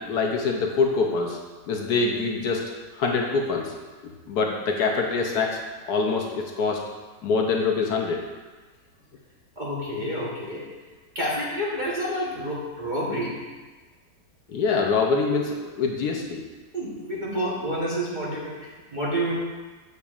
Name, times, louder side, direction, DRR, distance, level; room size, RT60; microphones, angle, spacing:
voice 1, 0.0-1.4 1.7-3.7 4.3-5.6 5.9-6.9 7.2-8.2 14.5-16.4, left 4 dB, 70° left, 1 dB, 1.1 m, -25 dB
voice 2, 9.6-10.7 11.1-13.4 16.7-19.4, equal, 35° right, -6 dB, 0.9 m, -29 dB
8.2 x 6.9 x 2.4 m, 1.3 s
omnidirectional pair, 1.9 m